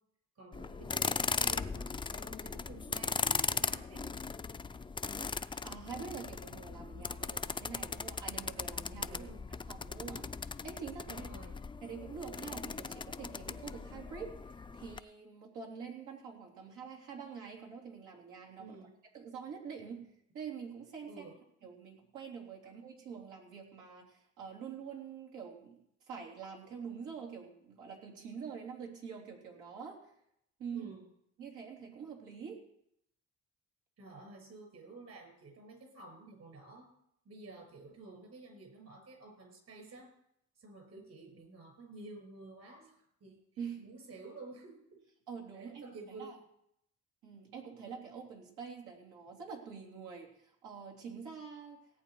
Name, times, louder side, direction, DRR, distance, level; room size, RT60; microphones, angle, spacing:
voice 1, 0.3-4.1 9.0-9.5 11.1-11.6 18.6-18.9 21.1-21.3 30.7-31.1 34.0-36.9 37.2-40.1 40.6-43.4 43.8-45.0 45.5-46.4, right 3 dB, 55° right, 3 dB, 6.4 m, -51 dB
sound 1, 0.5-15.0, left 4 dB, 15° left, 0.4 m, -38 dB
voice 2, 5.5-9.2 9.7-10.2 10.6-11.2 11.8-18.8 19.1-20.1 20.3-21.2 21.6-25.8 26.1-30.0 30.6-30.9 31.4-32.6 43.6-43.9 45.3-45.8 46.2-46.4 47.2-51.8, right 6 dB, 90° right, -1 dB, 3.5 m, -46 dB
17.5 x 8.6 x 4.7 m, 0.75 s
cardioid pair, 90°, 30 cm